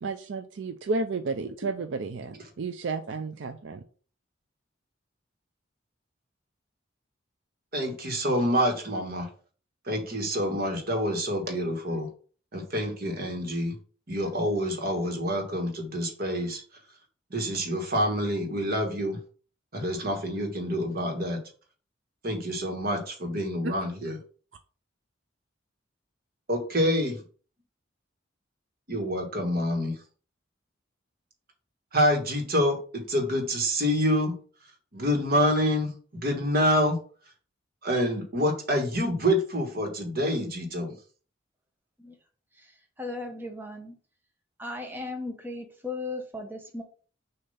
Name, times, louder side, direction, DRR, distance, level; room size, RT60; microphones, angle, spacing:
voice 1, 0.0-3.8 23.6-23.7, right 3 dB, 70° right, 8 dB, 0.5 m, -32 dB
voice 2, 7.7-9.3 9.8-12.1 12.5-13.7 14.1-16.6 17.3-19.2 19.7-21.4 22.2-24.2 26.5-27.2 28.9-30.0 31.9-34.4 34.9-37.0 37.8-40.9, equal, 50° right, 3 dB, 1.6 m, -27 dB
voice 3, 42.5-44.0 44.6-46.8, left 2 dB, 10° right, 2 dB, 0.9 m, -37 dB
6.6 x 2.8 x 5.5 m, 0.41 s
head